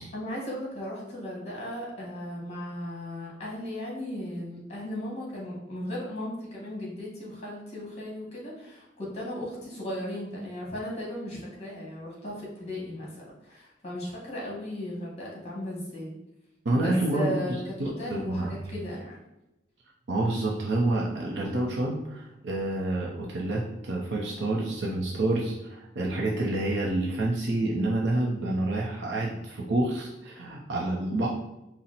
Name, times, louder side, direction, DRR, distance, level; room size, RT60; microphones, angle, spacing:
voice 1, 0.1-16.2 16.7-17.6 18.0-19.2, left 1 dB, 40° left, -4 dB, 1.4 m, -36 dB
voice 2, 16.6-17.4 17.8-18.5 20.1-31.3, right 2 dB, 75° right, -3 dB, 0.6 m, -28 dB
4.2 x 2.0 x 4.0 m, 0.93 s
head